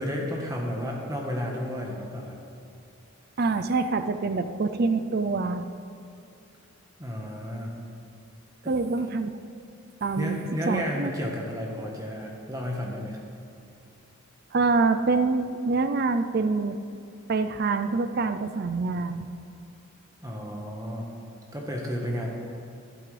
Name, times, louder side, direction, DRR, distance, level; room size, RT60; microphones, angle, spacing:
voice 1, 0.0-2.4 7.0-7.7 10.1-13.2 20.2-21.1 21.5-22.3, equal, 15° right, -1 dB, 1.3 m, -32 dB
voice 2, 3.4-5.6 8.7-9.3 10.0-10.4 10.7-11.1 14.5-16.8 17.3-19.3, right 3 dB, 45° right, 9 dB, 0.4 m, -25 dB
12.5 x 11.5 x 3.4 m, 2.7 s
head